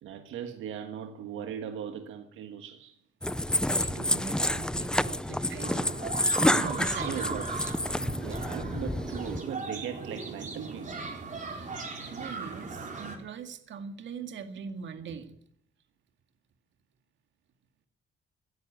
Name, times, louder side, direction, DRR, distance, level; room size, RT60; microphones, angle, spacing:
voice 1, 0.0-3.0 6.4-7.5 7.9-11.0, right 8 dB, 85° right, 5 dB, 1.5 m, -39 dB
sound 1, 3.2-9.4, left 1 dB, 5° left, 0.6 m, -29 dB
voice 2, 3.6-6.0 6.6-7.3 11.5-11.7 12.1-15.3, right 6 dB, 70° right, 7 dB, 2.1 m, -41 dB
sound 2, 5.6-13.2, right 4 dB, 40° right, 4.2 m, -38 dB
16.5 x 10.5 x 8.0 m, 0.70 s
cardioid pair, 90°, 20 cm